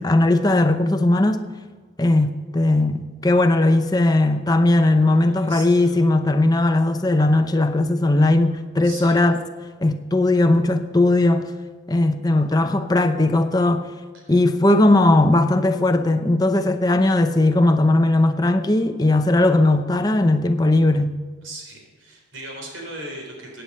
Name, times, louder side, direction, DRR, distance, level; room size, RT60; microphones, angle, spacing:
voice 1, 0.0-1.4 2.0-9.4 9.8-11.5 11.9-13.9 14.3-21.2, left 2 dB, 20° left, 0.7 m, -18 dB
voice 2, 5.1-6.0 8.8-9.2 14.1-14.3 21.4-23.6, right 1 dB, 75° right, 3.9 m, -38 dB
15.5 x 9.1 x 5.5 m
head